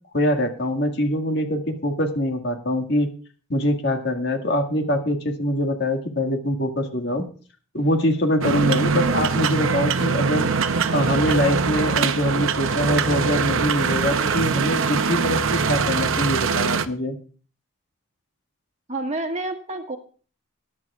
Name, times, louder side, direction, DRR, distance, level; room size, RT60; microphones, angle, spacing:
voice 1, 0.1-3.1 3.5-7.3 7.7-10.5 10.9-17.1, left 1 dB, 55° left, 4 dB, 1.8 m, -23 dB
sound 1, 8.4-16.9, right 5 dB, 70° right, 0.7 m, -22 dB
voice 2, 18.9-20.0, right 2 dB, 30° right, 4 dB, 1.6 m, -28 dB
21.0 x 10.5 x 2.4 m, 0.40 s
head